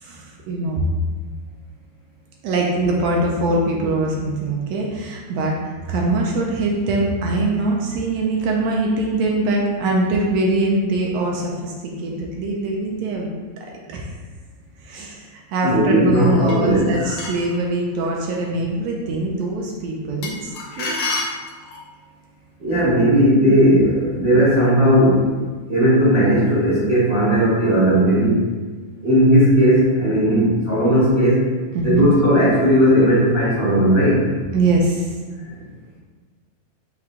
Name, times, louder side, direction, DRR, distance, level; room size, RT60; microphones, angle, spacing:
voice 1, 0.0-0.9 2.4-13.3 13.9-14.1 14.8-21.0 31.7-32.1 34.5-35.1, right 2 dB, 80° right, -1 dB, 1.6 m, -22 dB
voice 2, 15.6-16.9 22.6-25.3 25.7-28.5 29.0-31.5 31.8-34.3, equal, 55° right, -11 dB, 0.7 m, -16 dB
sound 1, 16.5-17.5 20.2-21.9, left 2 dB, 75° left, 1.2 m, -29 dB
6.0 x 2.2 x 3.6 m, 1.4 s
omnidirectional pair, 3.3 m